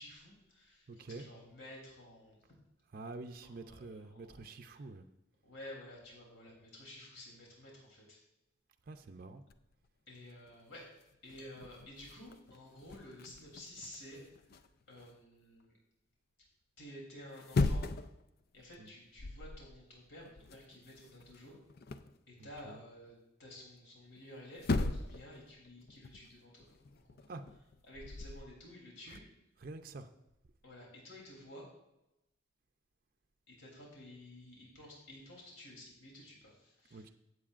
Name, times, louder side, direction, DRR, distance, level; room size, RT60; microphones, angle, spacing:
voice 1, 0.0-2.4 3.4-4.2 4.7-4.8 5.4-8.2 10.1-10.9 11.2-14.2 14.5-15.7 16.8-17.8 18.5-21.5 22.3-27.2 27.8-29.2 30.6-31.6 33.5-37.1, left 1 dB, 70° left, -3 dB, 3.3 m, -52 dB
voice 2, 0.9-1.3 2.9-5.1 8.9-9.4 18.8-18.9 22.4-22.8 27.3-27.5 29.1-29.2 29.6-30.1 36.9-37.1, right 3 dB, 50° right, 7 dB, 0.5 m, -47 dB
sound 1, 9.5-9.8 10.5-10.6 10.8-15.1 17.2-18.2 18.6-18.8 19.2-19.7 20.0-22.2 24.2-24.3 24.6-25.3 25.6-28.4, left 3 dB, 50° left, 0.4 m, -38 dB
16.0 x 7.9 x 2.5 m, 0.89 s
head